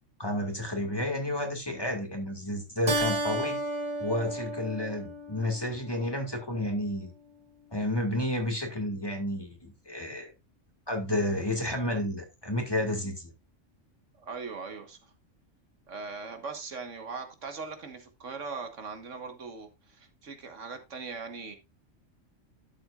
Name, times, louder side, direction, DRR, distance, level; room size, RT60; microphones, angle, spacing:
voice 1, 0.2-3.6 4.0-7.1 7.7-10.3 10.9-13.3, left 1 dB, 20° left, 2.2 m, -31 dB
Keyboard (musical), 2.9-5.8, right 2 dB, 35° right, 1.2 m, -32 dB
voice 2, 14.2-15.1 15.9-21.6, right 4 dB, 75° right, 1.8 m, -40 dB
12.0 x 7.8 x 2.5 m
omnidirectional pair, 1.3 m